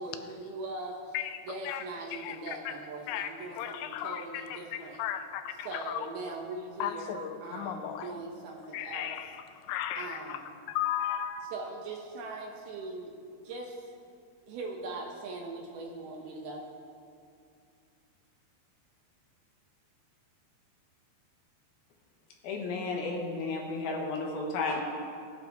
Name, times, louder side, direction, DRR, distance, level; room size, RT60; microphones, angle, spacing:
voice 1, 0.0-1.2 1.5-5.0 5.6-9.2 10.0-10.6 11.5-13.9 14.5-16.7, right 3 dB, 70° right, 1 dB, 2.6 m, -41 dB
voice 2, 2.1-2.7 3.1-6.1 6.8-8.2 8.7-10.4 10.7-11.5, left 10 dB, 90° left, 8 dB, 2.9 m, -35 dB
voice 3, 22.4-24.8, left 3 dB, 70° left, 0 dB, 2.7 m, -33 dB
18.5 x 9.1 x 3.5 m, 2.4 s
omnidirectional pair, 5.1 m